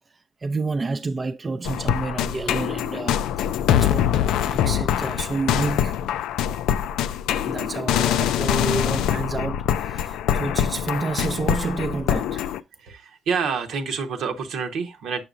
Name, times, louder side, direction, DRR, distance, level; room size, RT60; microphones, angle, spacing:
voice 1, 0.4-5.9 7.4-12.6, right 3 dB, 30° right, 0.4 m, -29 dB
sound 1, 1.6-12.6, left 10 dB, 85° left, 0.3 m, -24 dB
voice 2, 12.8-15.2, right 5 dB, 75° right, 1.0 m, -28 dB
6.7 x 5.9 x 2.5 m
cardioid pair, 90°, 0 cm